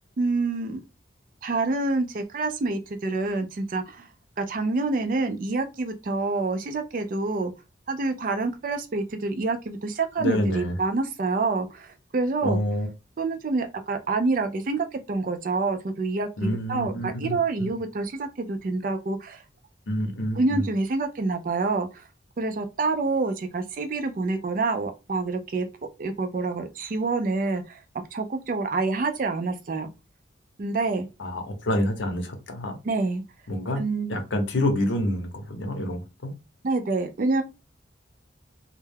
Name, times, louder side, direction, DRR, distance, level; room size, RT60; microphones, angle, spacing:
voice 1, 0.2-0.8 1.4-4.1 4.4-7.5 7.9-12.6 13.2-19.4 20.4-22.0 22.4-25.7 26.0-27.8 28.1-29.9 30.6-31.1 32.8-33.2 33.8-34.2 36.6-37.4, right 3 dB, 45° right, 0.4 m, -27 dB
voice 2, 10.2-10.7 12.4-12.9 16.4-17.7 19.9-20.6 31.2-32.8 33.5-33.8 34.1-36.4, left 1 dB, 80° left, 0.7 m, -27 dB
2.2 x 2.1 x 3.2 m
head